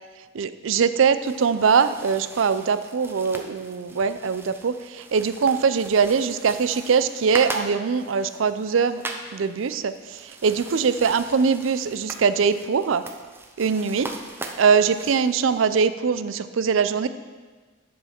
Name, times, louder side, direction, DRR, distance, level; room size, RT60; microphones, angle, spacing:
voice 1, 0.3-9.0 9.3-13.0 13.6-14.1 14.6-17.1, right 6 dB, 80° right, 12 dB, 0.5 m, -22 dB
sound 1, 1.0-15.8, right 2 dB, 10° right, 0.6 m, -40 dB
10.0 x 7.0 x 4.4 m, 1.4 s
head